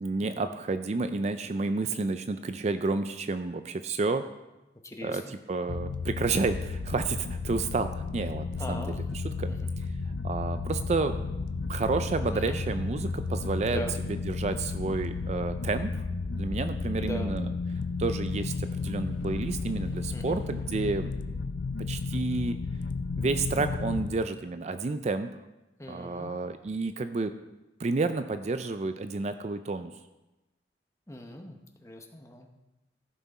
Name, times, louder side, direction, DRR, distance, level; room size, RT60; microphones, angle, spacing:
voice 1, 0.0-4.3 5.0-9.5 9.8-9.9 10.2-11.2 11.7-13.8 14.1-16.0 16.4-17.5 18.0-21.1 21.9-22.6 23.2-25.3 25.9-27.3 27.8-29.9, right 3 dB, 40° right, 10 dB, 0.4 m, -30 dB
voice 2, 4.8-5.4 8.6-9.0 9.5-9.7 12.3-12.6 13.7-13.9 17.0-17.3 20.1-20.4 25.8-26.3 31.1-32.5, left 1 dB, 15° left, 4 dB, 0.9 m, -40 dB
sound 1, 5.7-24.1, left 4 dB, 85° left, 0.6 m, -33 dB
14.5 x 5.9 x 4.2 m, 1.0 s
head